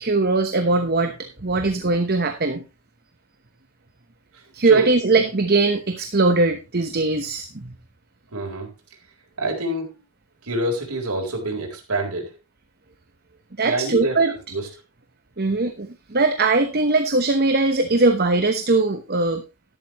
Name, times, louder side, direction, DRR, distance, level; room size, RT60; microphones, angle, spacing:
voice 1, 0.0-2.6 4.5-7.7 13.6-14.3 15.4-19.4, right 3 dB, 45° right, 7 dB, 1.0 m, -20 dB
voice 2, 4.3-4.9 8.3-8.7 9.4-9.9 10.4-12.3 13.6-14.7, right 1 dB, 90° right, 0 dB, 4.0 m, -27 dB
12.0 x 12.0 x 3.1 m, 0.26 s
head